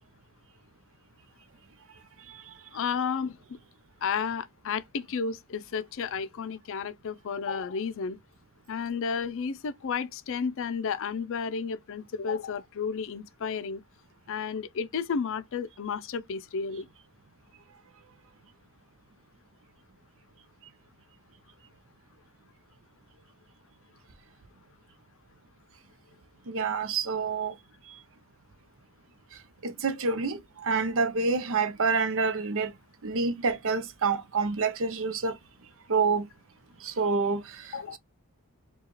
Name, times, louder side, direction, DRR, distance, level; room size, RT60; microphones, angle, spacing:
voice 1, 2.7-3.4 4.0-8.2 8.7-13.8 14.3-16.9 37.7-38.0, left 6 dB, 60° left, 0.4 m, -32 dB
voice 2, 26.5-27.6 29.6-32.7 33.0-35.4 35.9-36.3 36.8-38.0, right 4 dB, 60° right, 0.6 m, -28 dB
4.7 x 2.3 x 3.0 m
head